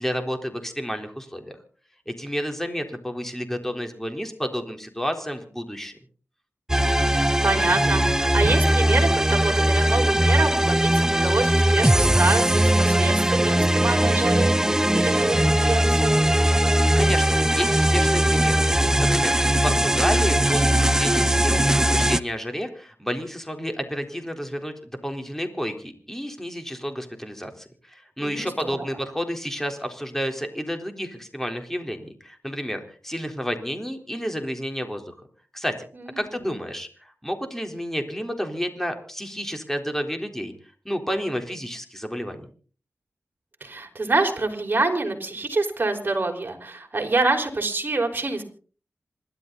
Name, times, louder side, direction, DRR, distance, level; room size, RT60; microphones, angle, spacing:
voice 1, 0.0-1.6 2.1-5.9 16.9-18.7 19.0-24.7 25.0-35.2 35.5-35.8 36.2-40.5 40.8-42.4, equal, 5° left, 5 dB, 3.9 m, -30 dB
sound 1, 6.7-22.2, right 1 dB, 10° right, 0.8 m, -20 dB
voice 2, 7.0-16.2 28.2-28.8 36.0-36.5 43.6-48.4, right 3 dB, 40° right, 2 dB, 5.2 m, -26 dB
27.5 x 12.5 x 4.1 m, 0.42 s
cardioid pair, 55°, 5 cm